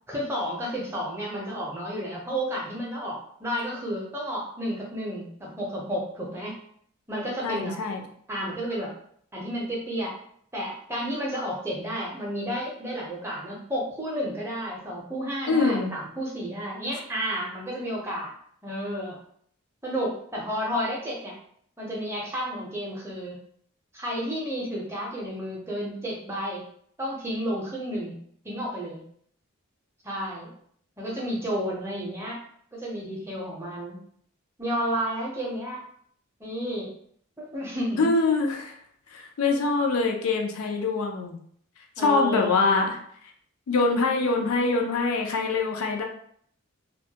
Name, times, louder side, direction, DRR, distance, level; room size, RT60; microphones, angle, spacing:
voice 1, 0.1-6.5 7.1-7.8 8.3-8.9 9.3-10.2 10.5-18.3 18.6-19.2 19.8-21.4 21.8-23.4 23.9-26.6 27.0-28.2 28.4-29.0 30.0-30.5 31.0-32.4 32.7-34.0 34.6-35.8 36.4-36.9 37.4-38.1 42.0-42.5, equal, 10° right, -4 dB, 0.5 m, -31 dB
voice 2, 7.4-8.0 15.5-15.9 38.0-38.8 39.1-41.4 42.0-43.0 43.7-46.0, left 3 dB, 90° left, 2 dB, 0.4 m, -24 dB
2.2 x 2.1 x 2.7 m, 0.64 s
head